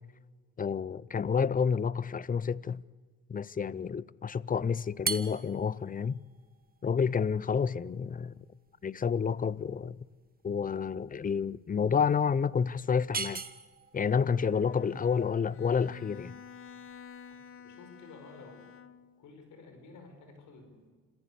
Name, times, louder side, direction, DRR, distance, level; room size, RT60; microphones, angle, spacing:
voice 1, 0.6-2.8 3.3-6.2 6.8-8.3 8.8-10.0 10.4-13.4 13.9-16.4, left 6 dB, 30° left, 0.6 m, -29 dB
sound 1, 4.9-17.4, right 4 dB, 30° right, 1.5 m, -42 dB
Bowed string instrument, 14.0-19.3, left 6 dB, 45° left, 1.3 m, -51 dB
voice 2, 14.8-15.1 17.3-18.7 19.2-20.9, left 3 dB, 80° left, 5.6 m, -52 dB
27.0 x 15.0 x 8.4 m
cardioid pair, 90°, 30 cm